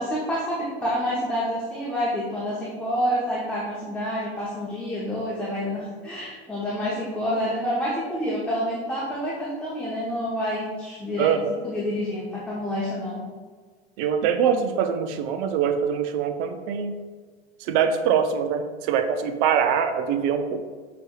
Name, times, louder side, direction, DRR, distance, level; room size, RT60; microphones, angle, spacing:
voice 1, 0.0-11.3 11.6-13.2, equal, 5° left, -8 dB, 0.9 m, -28 dB
voice 2, 11.2-11.5 14.0-17.0 17.6-20.6, right 7 dB, 50° right, 8 dB, 0.4 m, -23 dB
6.0 x 3.3 x 2.3 m, 1.5 s
hypercardioid pair, 85°, 32 cm